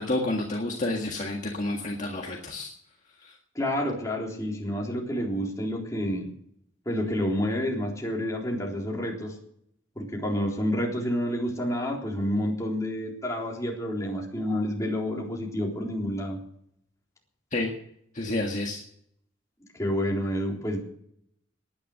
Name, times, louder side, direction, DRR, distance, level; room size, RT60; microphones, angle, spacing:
voice 1, 0.0-2.7 17.5-17.7 18.1-18.8, left 2 dB, 35° left, 0 dB, 1.8 m, -29 dB
voice 2, 3.6-6.3 6.9-9.3 10.0-16.4 19.7-20.8, equal, 15° left, -1 dB, 3.8 m, -29 dB
19.0 x 10.5 x 6.6 m, 0.71 s
head